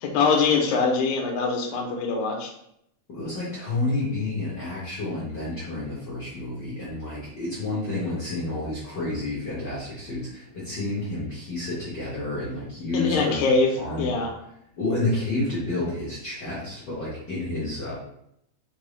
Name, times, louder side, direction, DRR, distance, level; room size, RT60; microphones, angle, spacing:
voice 1, 0.0-2.5 12.9-14.3, left 4 dB, 80° left, 1 dB, 2.1 m, -23 dB
voice 2, 3.1-14.2 14.8-17.9, left 2 dB, 65° left, -9 dB, 1.0 m, -30 dB
5.2 x 2.0 x 3.1 m, 0.74 s
omnidirectional pair, 3.5 m